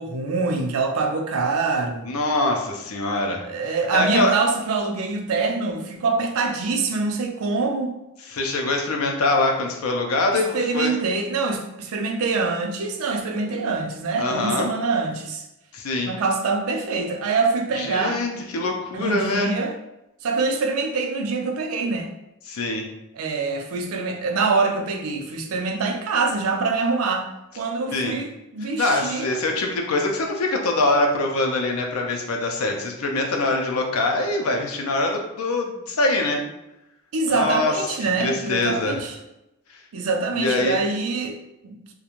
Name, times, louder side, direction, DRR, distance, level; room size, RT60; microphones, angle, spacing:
voice 1, 0.0-2.1 3.4-8.0 10.3-15.4 16.1-18.4 18.9-19.7 20.2-22.1 23.1-27.3 27.6-29.4 37.1-39.1 39.9-41.4 41.6-41.8, right 4 dB, 90° right, 4 dB, 0.4 m, -25 dB
voice 2, 2.0-3.4 3.9-4.3 8.3-10.9 14.2-14.7 15.7-16.1 17.8-19.5 22.5-22.8 27.9-28.2 28.8-36.4 37.3-37.8 38.0-39.0 40.3-40.8, left 2 dB, 90° left, 2 dB, 0.5 m, -23 dB
2.4 x 2.2 x 2.9 m, 0.90 s
head